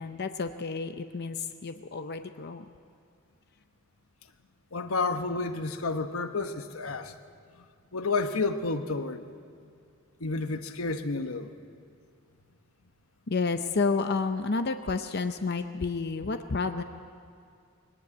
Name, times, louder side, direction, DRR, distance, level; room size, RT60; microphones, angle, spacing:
voice 1, 0.0-2.7 13.3-16.8, left 4 dB, 50° left, 8 dB, 0.6 m, -30 dB
voice 2, 4.7-7.1 7.6-7.7 7.9-9.3 10.2-11.5, left 3 dB, 90° left, 8 dB, 1.1 m, -30 dB
20.5 x 18.5 x 8.5 m, 2.3 s
head